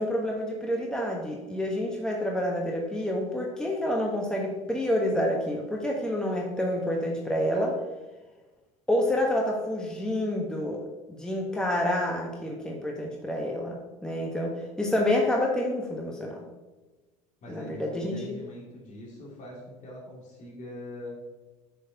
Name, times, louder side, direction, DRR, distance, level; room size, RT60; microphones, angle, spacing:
voice 1, 0.0-7.8 8.9-16.5 17.5-18.4, left 1 dB, 5° left, -1 dB, 1.1 m, -28 dB
voice 2, 17.4-21.2, left 1 dB, 45° left, -4 dB, 2.5 m, -42 dB
7.7 x 6.5 x 2.8 m, 1.2 s
hypercardioid pair, 85°, 18 cm